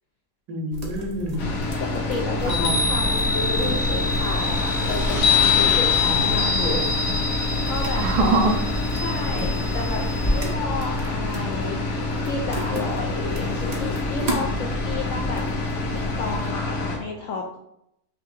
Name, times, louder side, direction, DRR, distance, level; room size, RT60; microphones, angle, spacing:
voice 1, 0.5-1.4 2.4-2.7 6.0-6.8 8.0-8.5 8.9-9.0, right 2 dB, 75° right, 2 dB, 1.3 m, -25 dB
sound 1, 0.7-16.5, right 1 dB, 60° right, 0.4 m, -35 dB
sound 2, 1.4-17.0, left 2 dB, 90° left, 1.4 m, -27 dB
voice 2, 1.9-7.0 7.3-8.0 9.0-17.6, left 3 dB, 70° left, 0 dB, 0.7 m, -32 dB
Chime, 2.4-10.5, left 4 dB, 30° left, 0.6 m, -24 dB
5.5 x 2.8 x 2.5 m, 0.80 s
omnidirectional pair, 1.7 m